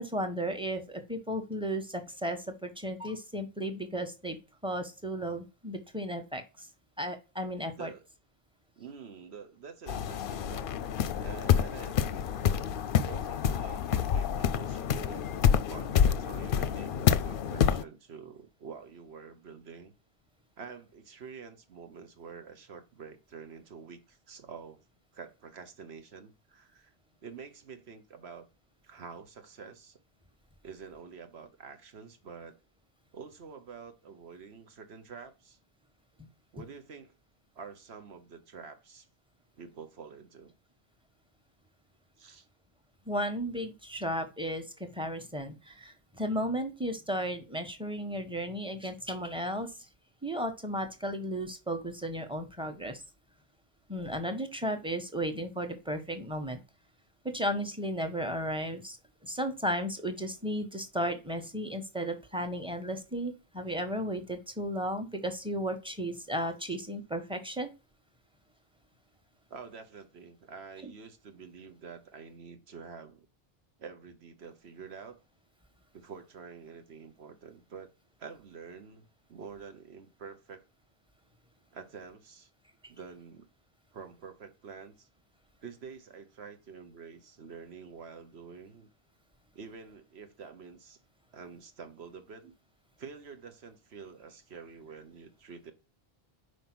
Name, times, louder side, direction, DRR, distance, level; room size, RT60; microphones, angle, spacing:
voice 1, 0.0-4.4 4.6-6.7 7.0-7.9 43.1-49.7 50.2-53.0 53.9-56.6 57.2-59.0 59.2-67.7 70.8-70.9, equal, 5° right, 1.0 m, -34 dB
voice 2, 8.8-10.7 11.1-12.2 13.1-19.9 20.6-24.9 25.1-26.9 27.2-28.5 28.8-30.0 30.6-32.6 33.1-35.6 36.5-37.1 37.5-39.1 39.6-40.5 42.2-42.5 69.5-73.3 73.8-75.2 75.9-77.9 78.2-80.6 81.7-82.5 82.9-83.5 83.9-85.1 85.6-88.9 89.5-91.0 91.3-92.6 93.0-95.7, right 6 dB, 85° right, 1.3 m, -47 dB
sound 1, 9.9-17.8, left 8 dB, 65° left, 0.7 m, -28 dB
5.3 x 5.0 x 6.0 m
omnidirectional pair, 1.0 m